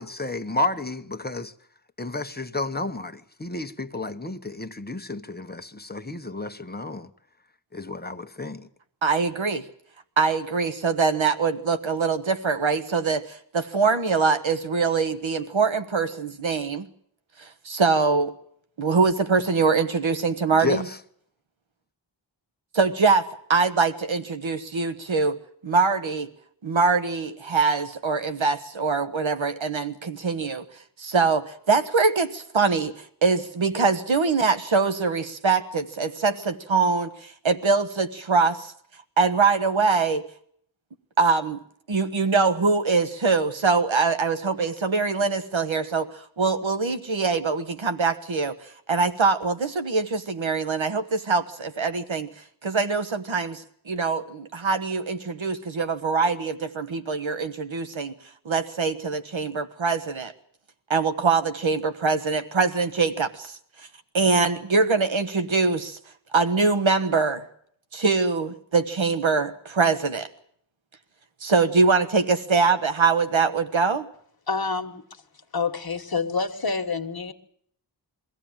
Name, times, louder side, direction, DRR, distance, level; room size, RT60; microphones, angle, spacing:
voice 1, 0.0-1.5 2.0-7.1 7.7-8.7 20.6-21.0, left 2 dB, 20° left, 1.1 m, -31 dB
voice 2, 9.0-9.6 10.2-16.9 17.4-18.3 18.8-20.8 22.7-25.4 25.6-26.3 26.6-30.6 31.0-32.9 33.2-38.7 39.2-40.3 41.2-41.6 41.9-46.1 46.4-48.5 48.9-52.3 52.6-58.1 58.4-60.3 60.9-63.5 64.1-66.0 66.3-67.4 67.9-70.3 71.4-74.1, right 4 dB, 85° right, 1.4 m, -23 dB
voice 3, 74.5-75.0 75.5-77.3, left 4 dB, 50° left, 1.6 m, -27 dB
23.0 x 15.5 x 9.0 m
wide cardioid pair, 70°, 46 cm